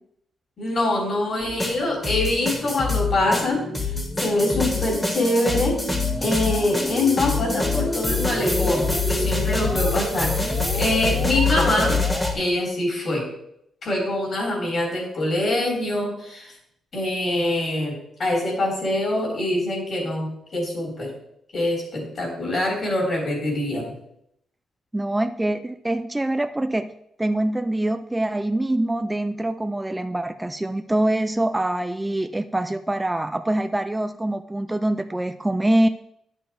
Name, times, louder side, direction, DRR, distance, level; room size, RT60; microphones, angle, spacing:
voice 1, 0.6-3.6 4.2-5.8 6.2-12.0 12.3-13.3 13.8-16.6 16.9-21.1 21.5-23.9, left 1 dB, 45° left, -1 dB, 3.8 m, -24 dB
sound 1, 1.4-12.3, left 3 dB, 10° left, 1.3 m, -25 dB
voice 2, 24.9-26.9 27.2-35.9, right 1 dB, 10° right, 9 dB, 0.4 m, -24 dB
10.5 x 6.3 x 4.6 m, 0.76 s
cardioid pair, 130°, 0 cm